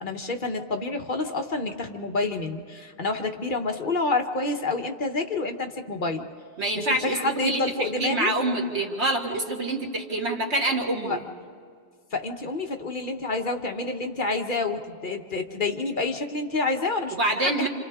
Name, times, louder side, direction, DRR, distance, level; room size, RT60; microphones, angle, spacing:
voice 1, 0.0-6.3 6.8-8.3 10.8-11.2 12.1-17.7, left 3 dB, 50° left, 4 dB, 1.2 m, -28 dB
voice 2, 6.6-11.2 17.1-17.7, right 2 dB, 85° right, 1 dB, 2.2 m, -26 dB
27.5 x 27.5 x 3.6 m, 2.2 s
omnidirectional pair, 1.1 m